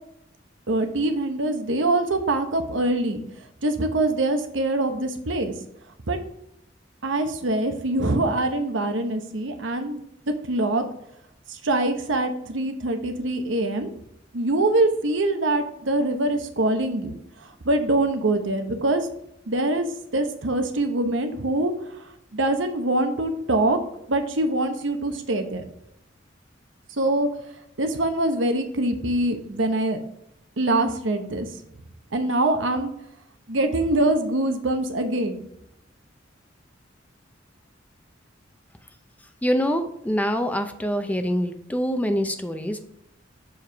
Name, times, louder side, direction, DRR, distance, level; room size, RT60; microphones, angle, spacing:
voice 1, 0.7-3.2 3.6-5.5 6.1-6.2 7.0-10.0 10.5-10.8 11.5-13.9 14.3-17.1 17.4-19.1 19.5-19.9 20.1-21.9 22.3-23.8 24.1-25.6 26.9-27.3 27.8-30.0 30.6-31.5 32.1-32.9 33.5-35.4, right 2 dB, 80° right, 6 dB, 0.9 m, -24 dB
voice 2, 39.4-42.8, equal, 10° left, 7 dB, 0.5 m, -25 dB
6.8 x 4.7 x 3.4 m, 0.77 s
head